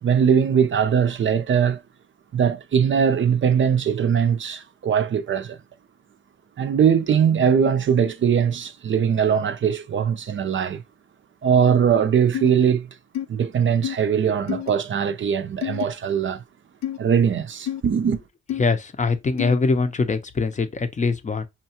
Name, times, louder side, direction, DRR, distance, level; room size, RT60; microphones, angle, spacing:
voice 1, 0.0-1.8 2.3-5.6 6.6-10.8 11.4-12.9 13.3-16.4 17.0-18.2, right 7 dB, 40° right, 0.5 m, -21 dB
sound 1, 12.3-12.5 13.1-13.3 13.8-14.0 14.5-14.7 15.6-15.9 16.8-17.0 17.7-17.8 18.5-18.6 19.4-19.6, left 11 dB, 60° left, 0.6 m, -28 dB
voice 2, 18.6-21.5, left 4 dB, 25° left, 0.6 m, -23 dB
5.5 x 2.3 x 2.8 m
cardioid pair, 90°, 30 cm